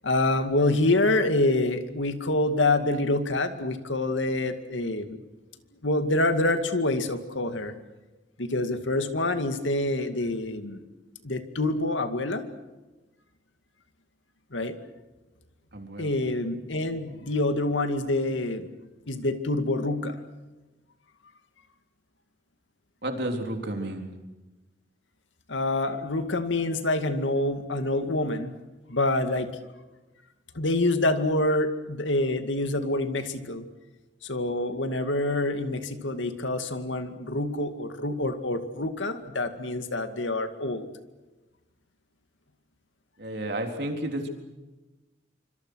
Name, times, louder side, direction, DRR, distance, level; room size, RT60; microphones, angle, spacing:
voice 1, 0.0-5.1 5.8-7.7 8.4-10.8 11.2-12.4 14.5-14.8 16.0-18.7 19.1-20.2 25.5-28.5 28.9-29.5 30.5-33.6 34.2-40.9, left 2 dB, 90° left, 8 dB, 2.3 m, -26 dB
voice 2, 15.7-16.1 23.0-24.1 43.2-44.3, right 1 dB, 60° right, 4 dB, 3.8 m, -31 dB
26.5 x 26.0 x 6.4 m, 1.1 s
head